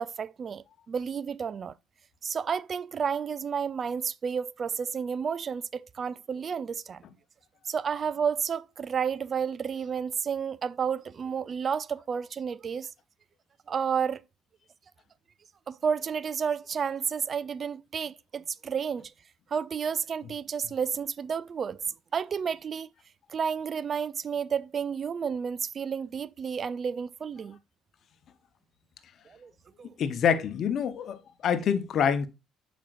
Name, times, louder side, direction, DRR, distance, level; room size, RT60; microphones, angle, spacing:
voice 1, 0.0-1.7 2.2-7.0 7.7-12.9 13.7-14.2 15.7-19.1 19.5-21.8 22.1-22.9 23.3-27.6 29.3-29.5 29.8-29.9, right 7 dB, 45° right, 0.3 m, -31 dB
voice 2, 30.0-32.3, left 7 dB, 60° left, 0.9 m, -26 dB
7.4 x 5.1 x 2.5 m
supercardioid pair, 80°, 0 cm